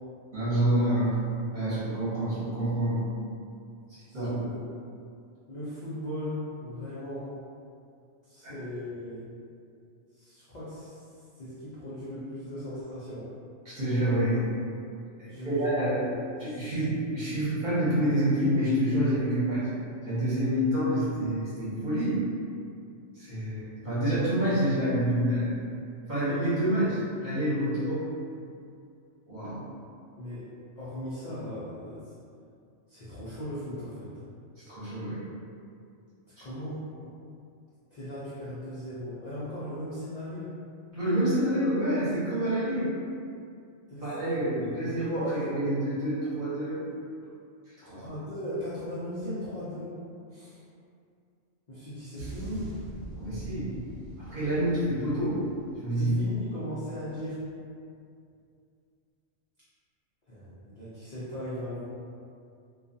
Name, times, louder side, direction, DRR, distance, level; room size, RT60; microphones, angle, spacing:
voice 1, 0.3-1.2 1.5-3.0 4.1-4.4 8.4-8.5 13.6-14.4 15.2-16.0 16.4-19.7 20.0-22.2 23.1-25.5 26.1-28.0 29.3-29.7 34.7-35.2 40.9-42.9 44.0-46.8 47.8-48.0 53.1-53.8 54.2-55.4 55.8-56.1, right 1 dB, 40° right, -12 dB, 0.9 m, -27 dB
voice 2, 4.1-4.6 5.5-7.4 8.2-9.3 10.1-11.1 11.3-13.3 15.2-16.8 30.2-32.1 32.9-34.1 36.3-37.2 37.9-40.6 43.9-44.8 45.1-45.5 47.9-50.0 50.3-50.6 51.7-52.8 56.0-57.5 60.3-61.9, left 1 dB, 65° left, -11 dB, 0.4 m, -38 dB
sound 1, 52.2-56.7 57.0-57.3, right 1 dB, 85° right, 1.0 m, -43 dB
2.3 x 2.3 x 2.6 m, 2.4 s
omnidirectional pair, 1.4 m